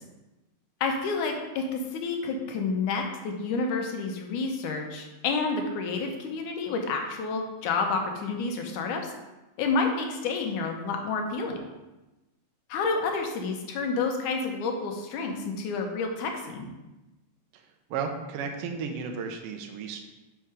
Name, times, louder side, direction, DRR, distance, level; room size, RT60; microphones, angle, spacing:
voice 1, 0.8-9.0 9.6-11.6 12.7-16.7, left 4 dB, 80° left, 3 dB, 2.3 m, -29 dB
voice 2, 17.9-20.0, right 5 dB, 85° right, 3 dB, 1.3 m, -33 dB
5.8 x 5.6 x 4.8 m, 1.0 s
omnidirectional pair, 3.5 m